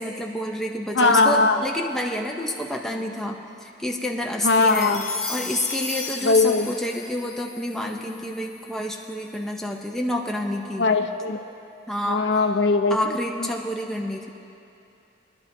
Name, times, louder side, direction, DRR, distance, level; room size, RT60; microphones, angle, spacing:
voice 1, 0.0-5.0 5.3-10.9 11.9-12.3 12.9-14.3, equal, ahead, 0 dB, 0.6 m, -29 dB
voice 2, 0.9-1.6 4.4-5.0 6.2-6.7 10.8-11.4 12.1-13.0 13.4-13.5, left 3 dB, 70° left, 6 dB, 0.7 m, -19 dB
sound 1, 4.5-9.0, left 4 dB, 35° left, 1.2 m, -35 dB
23.5 x 11.5 x 2.7 m, 2.7 s
head